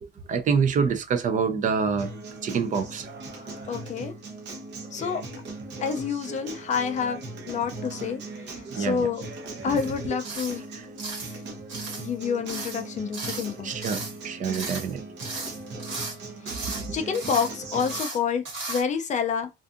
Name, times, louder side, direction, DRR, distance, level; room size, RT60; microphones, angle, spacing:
voice 1, 0.3-2.1 2.4-3.1 8.7-9.1 10.1-10.2 10.7-10.8 13.6-15.0, right 6 dB, 40° right, 0.4 m, -26 dB
Acoustic guitar, 2.0-18.0, right 2 dB, 65° right, 0.8 m, -39 dB
voice 2, 3.7-4.1 4.9-5.2 5.8-9.3 9.6-10.6 11.2-11.4 12.0-13.7 16.5-16.6 16.9-19.5, left 6 dB, 40° left, 0.4 m, -28 dB
sound 1, 9.8-9.9 10.2-10.6 11.0-11.4 11.7-12.1 12.5-12.8 13.1-13.5 13.8-14.2 14.5-14.9 15.2-16.2 16.5-16.9 17.1-17.5 17.8-18.2 18.4-18.8, right 3 dB, 85° right, 1.3 m, -35 dB
2.5 x 2.4 x 2.4 m
cardioid pair, 160°, 19 cm